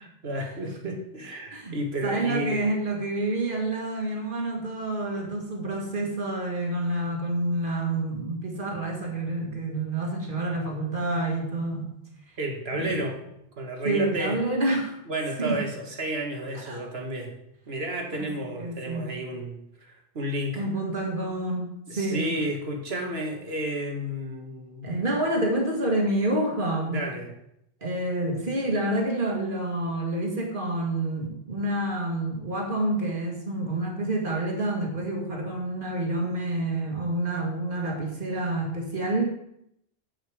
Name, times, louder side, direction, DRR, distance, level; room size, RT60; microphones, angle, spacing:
voice 1, 0.2-2.7 12.4-13.2 13.6-14.4 15.1-17.3 17.7-20.7 21.9-25.0 26.9-27.4, right 1 dB, 70° right, 2 dB, 1.8 m, -32 dB
voice 2, 1.5-11.9 12.7-13.0 13.8-15.0 15.4-15.6 16.5-16.8 18.1-19.1 20.6-22.4 24.8-27.1 27.8-39.2, right 1 dB, 50° right, 0 dB, 2.1 m, -28 dB
8.0 x 7.9 x 4.9 m, 0.77 s
omnidirectional pair, 1.1 m